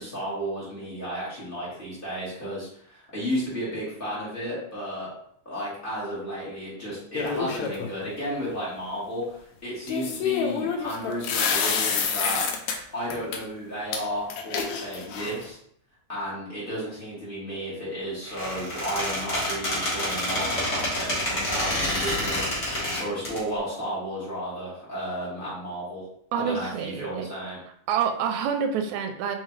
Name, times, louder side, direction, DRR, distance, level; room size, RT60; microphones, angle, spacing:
voice 1, 0.0-5.1 5.4-9.4 9.6-12.4 12.9-15.6 16.1-22.4 23.0-26.0 26.4-27.6, equal, 25° left, -9 dB, 1.1 m, -33 dB
sound 1, 7.1-7.9 9.9-12.8 13.1-13.4 13.9-14.0 14.3-15.5, left 6 dB, 80° left, 1.7 m, -27 dB
Squeak, 18.2-23.4, left 1 dB, 50° left, 0.8 m, -28 dB
voice 2, 26.3-27.3 27.9-29.4, right 7 dB, 80° right, 5 dB, 1.8 m, -27 dB
4.6 x 3.5 x 3.2 m, 0.67 s
omnidirectional pair, 3.5 m